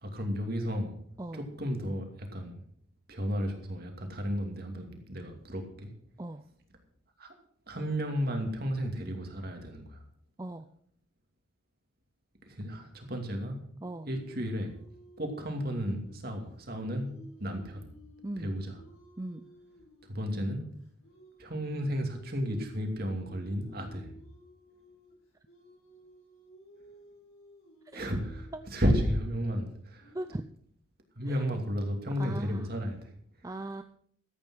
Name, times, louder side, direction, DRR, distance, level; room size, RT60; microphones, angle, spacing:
voice 1, 0.0-1.0 1.3-2.6 3.1-5.9 7.2-7.3 7.7-10.0 12.5-13.6 14.0-14.7 15.2-17.1 17.4-17.8 18.4-18.8 20.0-20.6 21.4-24.1 27.9-30.2 31.2-33.5, equal, 50° right, 3 dB, 2.6 m, -33 dB
sound 1, 13.8-30.4, left 1 dB, 85° left, 5.8 m, -56 dB
voice 2, 19.2-19.5 27.9-28.1 30.1-30.4 31.3-31.4 32.2-32.7 33.4-33.8, right 2 dB, 15° right, 8 dB, 0.4 m, -38 dB
13.5 x 8.9 x 6.4 m, 0.63 s
head